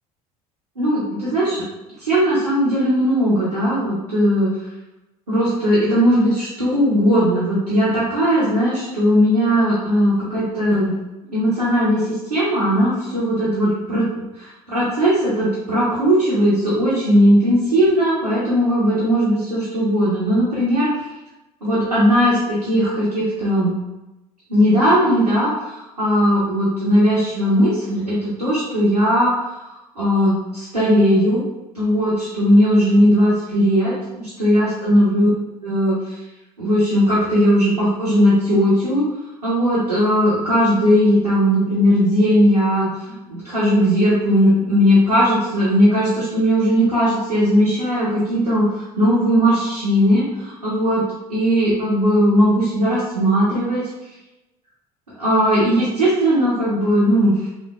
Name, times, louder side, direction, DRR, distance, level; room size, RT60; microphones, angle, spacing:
voice 1, 0.8-1.6 2.0-4.5 5.3-10.9 11.3-14.1 14.4-20.9 21.6-23.7 24.5-29.6 30.0-31.4 31.7-35.3 35.6-36.2 36.6-39.0 39.4-42.9 43.3-51.0 51.3-53.8 55.2-57.3, equal, 85° right, -9 dB, 0.8 m, -18 dB
3.1 x 2.5 x 2.2 m, 1.0 s
figure-of-eight pair, 60°, 20 cm